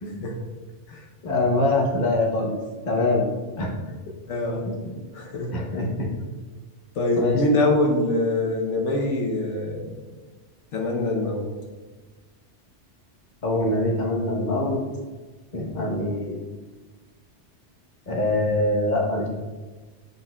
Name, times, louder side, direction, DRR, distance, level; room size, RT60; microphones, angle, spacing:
voice 1, 1.2-2.6 2.9-3.3 3.6-3.7 4.6-4.9 5.5-6.1 7.2-7.4 13.4-14.8 15.5-16.4 18.1-19.3, left 2 dB, 40° left, -1 dB, 1.1 m, -24 dB
voice 2, 4.3-4.7 5.1-5.7 7.0-9.9 10.7-11.5, left 2 dB, 80° left, 1 dB, 1.2 m, -24 dB
8.2 x 5.2 x 2.3 m, 1.3 s
omnidirectional pair, 1.2 m